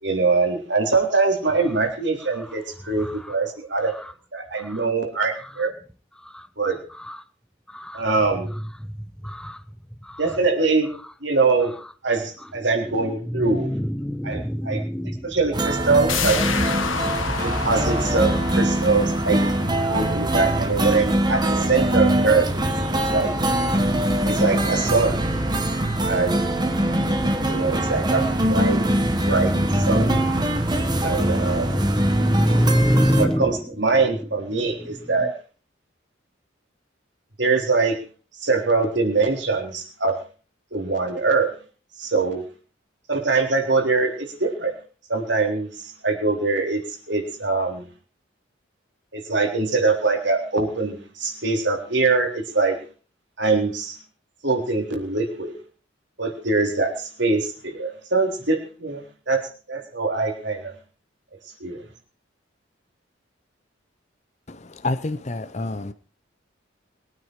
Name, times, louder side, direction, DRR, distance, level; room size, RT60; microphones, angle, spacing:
voice 1, 0.0-3.9 4.3-5.7 6.6-6.8 7.9-8.5 10.2-10.9 11.2-11.7 12.0-13.7 14.2-14.8 15.2-16.4 17.4-19.6 19.9-22.5 23.1-23.3 24.2-25.2 26.1-26.6 27.5-28.8 29.3-30.2 31.0-31.8 33.2-35.3 37.4-38.0 38.4-40.2 40.7-41.5 42.0-42.4 43.1-44.7 45.1-47.9 49.1-52.8 53.4-54.0 54.4-55.5 56.2-59.4 59.7-60.7 61.6-61.8, right 3 dB, 65° right, 3.8 m, -23 dB
voice 2, 7.7-8.0 8.8-8.9 9.2-9.6 10.0-10.2 12.9-15.4 27.9-33.6, equal, 5° left, 0.8 m, -25 dB
sound 1, 15.5-33.3, right 1 dB, 20° right, 1.6 m, -23 dB
sound 2, 16.1-21.6 21.9-22.0, left 6 dB, 85° left, 1.8 m, -30 dB
voice 3, 64.5-65.9, left 2 dB, 35° left, 0.7 m, -28 dB
22.0 x 9.5 x 4.8 m
head